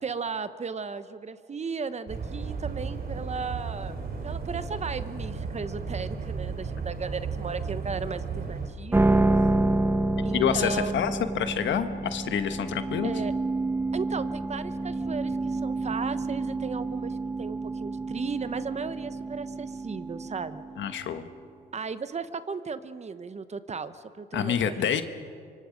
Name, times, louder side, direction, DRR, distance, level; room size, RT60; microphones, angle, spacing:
voice 1, 0.0-4.0 4.2-9.1 10.2-11.1 13.0-13.3 13.9-20.6 21.7-24.9, right 5 dB, 35° right, 12 dB, 1.0 m, -35 dB
sound 1, 2.1-8.7, right 5 dB, 50° right, 3.3 m, -34 dB
sound 2, 8.9-21.2, right 2 dB, 10° right, 0.7 m, -28 dB
voice 2, 10.3-13.1 20.8-21.3 24.3-25.0, left 8 dB, 70° left, 10 dB, 1.3 m, -27 dB
25.5 x 24.0 x 5.2 m, 2.2 s
cardioid pair, 90°, 20 cm